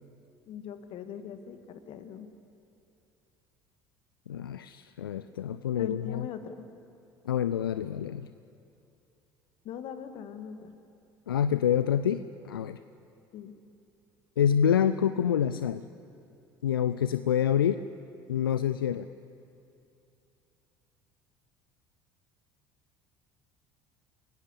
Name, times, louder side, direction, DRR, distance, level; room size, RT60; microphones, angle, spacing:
voice 1, 0.5-2.3 5.8-6.7 9.6-10.7 13.3-13.5, left 7 dB, 55° left, 9 dB, 1.9 m, -41 dB
voice 2, 4.3-6.3 7.3-8.3 11.3-12.8 14.4-15.8 16.6-17.8 18.3-19.1, left 9 dB, 80° left, 13 dB, 0.5 m, -27 dB
29.5 x 18.0 x 7.0 m, 2.7 s
figure-of-eight pair, 60°, 12 cm